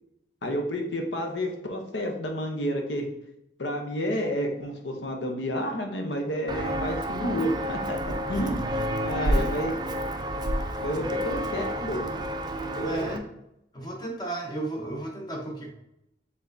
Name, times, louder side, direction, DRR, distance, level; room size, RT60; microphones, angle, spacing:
voice 1, 0.4-3.1 3.6-8.0 8.3-8.7 9.0-9.7 10.8-12.1 12.7-13.1, equal, 80° left, 3 dB, 0.8 m, -30 dB
Walk footsteps, 6.5-13.2, right 1 dB, 25° right, 0.3 m, -30 dB
voice 2, 9.0-9.4 10.9-11.1 12.8-13.3 13.7-15.7, right 1 dB, 25° left, 0 dB, 0.8 m, -35 dB
4.6 x 3.5 x 2.6 m, 0.83 s
head